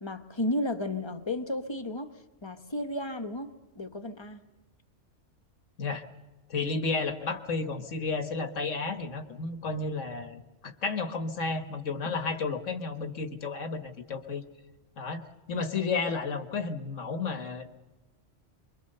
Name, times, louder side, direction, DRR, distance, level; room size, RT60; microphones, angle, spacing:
voice 1, 0.0-2.1 2.4-4.4, left 1 dB, 25° left, 8 dB, 1.2 m, -33 dB
voice 2, 6.5-14.4 15.0-17.7, left 4 dB, 80° left, 9 dB, 1.8 m, -32 dB
24.5 x 22.5 x 6.7 m, 1.1 s
omnidirectional pair, 1.3 m